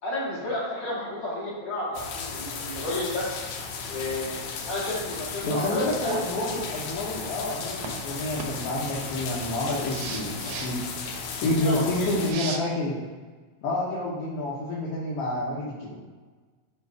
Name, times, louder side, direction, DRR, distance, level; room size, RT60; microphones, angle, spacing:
voice 1, 0.0-3.3 3.9-4.3 4.7-6.2 11.6-12.1, left 1 dB, 40° left, -7 dB, 2.3 m, -31 dB
sound 1, 1.9-12.3, left 5 dB, 80° left, 1.3 m, -35 dB
voice 2, 5.4-10.8 11.4-13.0 13.6-15.9, left 1 dB, 65° left, -6 dB, 1.7 m, -29 dB
sound 2, 7.8-8.0 8.4-8.5 9.9-10.7 12.2-12.6, right 5 dB, 75° right, 1.5 m, -35 dB
6.6 x 3.0 x 4.8 m, 1.4 s
omnidirectional pair, 3.4 m